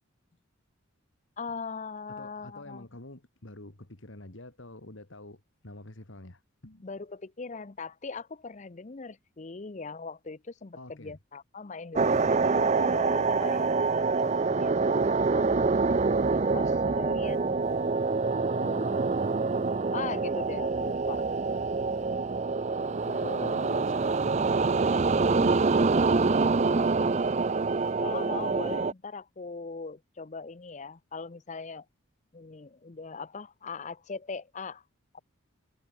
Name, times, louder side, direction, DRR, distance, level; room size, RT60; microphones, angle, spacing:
voice 1, 1.4-2.9 6.8-16.0 16.5-17.6 18.5-19.0 19.9-21.2 22.8-23.8 28.0-31.8 32.3-34.8 35.1-35.2, left 4 dB, 35° left, 0.6 m, -40 dB
voice 2, 2.1-7.1 10.7-11.2 18.5-19.4 23.1-27.3 27.8-27.9, left 1 dB, 60° left, 2.2 m, -48 dB
sound 1, 12.0-28.9, right 4 dB, 30° right, 0.5 m, -26 dB
head